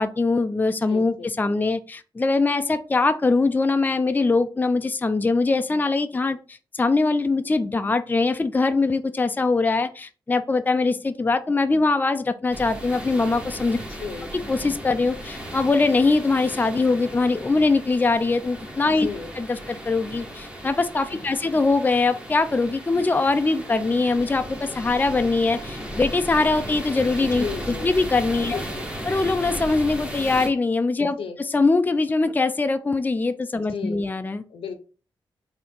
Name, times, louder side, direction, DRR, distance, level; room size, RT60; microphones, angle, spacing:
voice 1, 0.0-13.8 14.5-19.1 19.4-27.4 27.8-28.6 29.1-31.2 31.5-34.4, left 3 dB, 20° left, 9 dB, 0.4 m, -22 dB
sound 1, 12.5-30.5, equal, 10° right, 1.4 m, -36 dB
voice 2, 13.9-14.3 18.9-19.3 21.1-21.4 27.4-27.9 28.4-28.9 31.0-31.4 33.5-34.1 34.5-34.7, left 5 dB, 80° left, 8 dB, 0.7 m, -35 dB
3.8 x 2.8 x 3.6 m, 0.36 s
cardioid pair, 55°, 9 cm